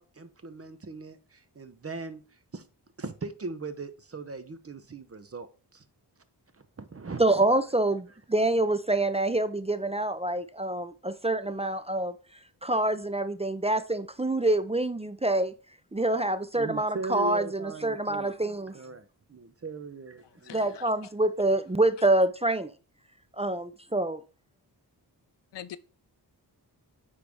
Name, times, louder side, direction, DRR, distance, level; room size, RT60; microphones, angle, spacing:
voice 1, 0.0-2.7 3.0-5.8 6.5-7.2 16.5-18.4 18.7-20.8, right 3 dB, 35° right, 0.8 m, -39 dB
voice 2, 7.2-12.1 12.6-15.5 15.9-18.7 20.5-22.7 23.4-24.2, right 2 dB, 15° right, 0.4 m, -26 dB
voice 3, 20.5-20.8 25.5-25.8, left 11 dB, 80° left, 0.6 m, -42 dB
9.2 x 3.4 x 3.5 m
cardioid pair, 55°, 42 cm